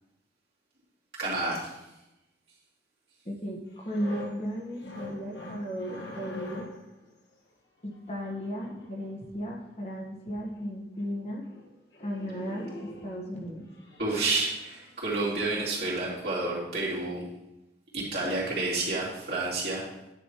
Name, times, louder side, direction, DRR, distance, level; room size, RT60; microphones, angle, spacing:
voice 1, 1.2-1.7 14.0-17.2 17.9-19.8, right 2 dB, 65° right, -7 dB, 2.8 m, -30 dB
voice 2, 3.2-6.6 7.8-11.4 12.0-13.6, equal, 35° left, -1 dB, 1.3 m, -35 dB
sound 1, 3.7-6.9 7.9-9.1 10.2-10.3 10.6-10.7 11.0-11.2 11.5-11.7 11.9-13.2 13.7-15.3 15.7-15.9, left 2 dB, 75° left, 1.7 m, -44 dB
10.0 x 6.3 x 3.1 m, 0.95 s
head